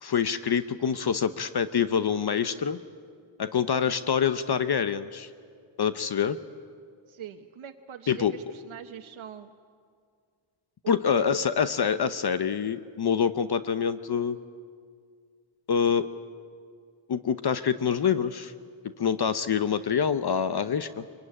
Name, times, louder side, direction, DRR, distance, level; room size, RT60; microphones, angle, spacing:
voice 1, 0.0-2.8 3.4-5.3 5.8-6.4 8.1-8.3 10.9-14.4 15.7-16.1 17.1-18.5 18.8-21.0, left 7 dB, 55° left, 12 dB, 0.9 m, -26 dB
voice 2, 7.1-9.5 10.8-11.5, right 9 dB, 80° right, 4 dB, 1.1 m, -42 dB
24.0 x 22.5 x 9.9 m, 2.1 s
wide cardioid pair, 115°, 48 cm